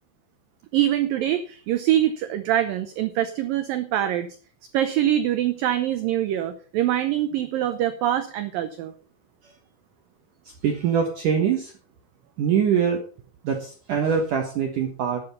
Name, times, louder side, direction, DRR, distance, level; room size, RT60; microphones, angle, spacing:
voice 1, 0.7-4.3 4.7-8.9, right 12 dB, 85° right, 10 dB, 2.0 m, -24 dB
voice 2, 10.6-11.7 12.4-13.0 13.4-15.2, right 7 dB, 65° right, 3 dB, 2.3 m, -23 dB
10.5 x 8.9 x 5.5 m, 0.42 s
omnidirectional pair, 5.0 m